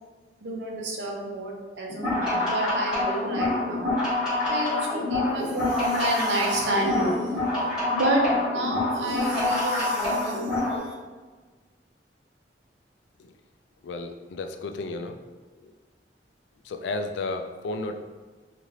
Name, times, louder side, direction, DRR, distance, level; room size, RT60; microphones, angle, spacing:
voice 1, 0.4-3.9 4.5-7.4 7.9-10.9, right 1 dB, 85° right, -1 dB, 0.7 m, -29 dB
sound 1, 1.9-10.8, left 2 dB, 5° right, 1.2 m, -26 dB
voice 2, 13.8-15.2 15.6-15.7 16.6-18.0, left 2 dB, 80° left, 6 dB, 0.3 m, -33 dB
3.2 x 2.5 x 2.7 m, 1.4 s
head